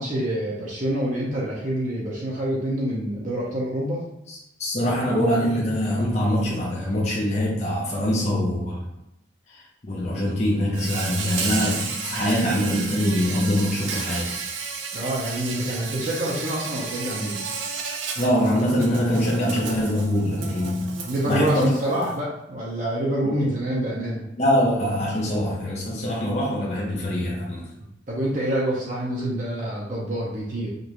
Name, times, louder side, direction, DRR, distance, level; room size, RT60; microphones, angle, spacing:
voice 1, 0.0-4.0 14.9-17.4 20.9-24.2 28.1-30.7, right 1 dB, 40° right, -5 dB, 0.8 m, -26 dB
voice 2, 4.3-8.8 9.5-14.3 18.2-20.9 21.3-21.6 23.2-23.6 24.4-27.7, equal, 35° left, -5 dB, 0.8 m, -24 dB
Insect, 10.7-22.2, right 5 dB, 80° right, 0.6 m, -33 dB
5.1 x 2.6 x 3.0 m, 0.89 s
head